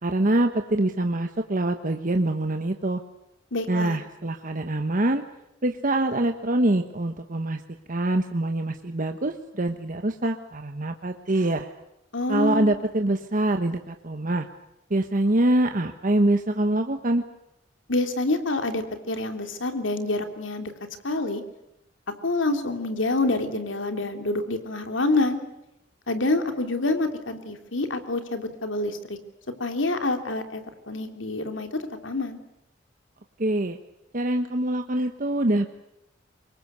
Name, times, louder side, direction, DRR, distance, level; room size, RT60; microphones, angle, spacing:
voice 1, 0.0-3.0 3.7-5.2 5.6-7.6 7.9-11.7 12.3-14.5 14.9-17.2 33.4-33.8 34.1-35.7, right 1 dB, 45° right, 6 dB, 1.2 m, -24 dB
voice 2, 3.5-4.0 12.1-12.6 17.9-20.7 21.0-21.4 22.2-25.4 26.1-29.2 29.6-32.4, left 2 dB, 85° left, 6 dB, 3.2 m, -27 dB
25.5 x 22.5 x 8.2 m, 0.87 s
head